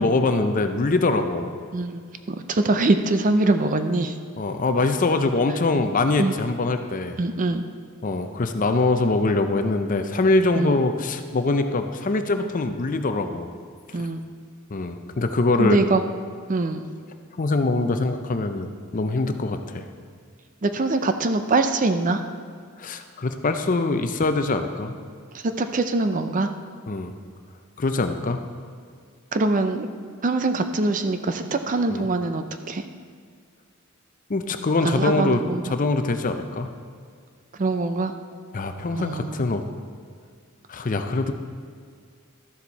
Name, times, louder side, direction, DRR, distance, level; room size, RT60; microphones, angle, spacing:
voice 1, 0.0-1.6 4.4-7.2 8.0-13.5 13.9-14.0 14.7-15.8 17.4-19.9 22.8-24.9 26.9-27.1 27.8-28.4 31.9-32.0 34.3-36.7 38.5-39.6 40.7-41.3, left 3 dB, 40° left, 7 dB, 0.6 m, -23 dB
voice 2, 2.3-4.1 6.2-6.3 7.2-7.6 10.6-10.8 13.9-14.2 15.6-16.0 16.5-16.9 20.6-22.2 25.4-26.5 29.3-29.9 30.2-32.8 34.8-35.6 37.6-38.1 38.9-39.4, right 2 dB, 40° right, 8 dB, 0.5 m, -23 dB
13.0 x 7.1 x 4.1 m, 2.1 s
head